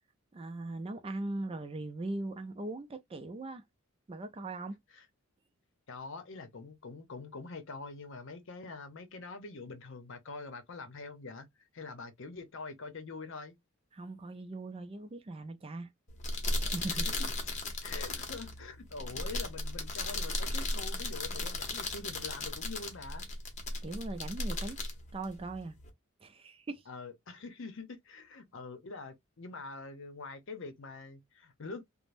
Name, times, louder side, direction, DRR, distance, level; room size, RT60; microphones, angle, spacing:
voice 1, 0.3-3.6 4.1-4.8 13.9-15.9 16.6-17.1 18.2-18.3 23.8-24.8 25.1-25.8 26.2-26.8, right 2 dB, 30° right, 0.4 m, -40 dB
voice 2, 5.9-11.5 11.7-13.6 16.9-17.0 17.4-17.5 17.8-23.3 26.9-31.8, left 3 dB, 65° left, 0.7 m, -45 dB
sound 1, 16.1-25.9, left 2 dB, 35° left, 0.8 m, -36 dB
3.2 x 2.0 x 2.5 m
head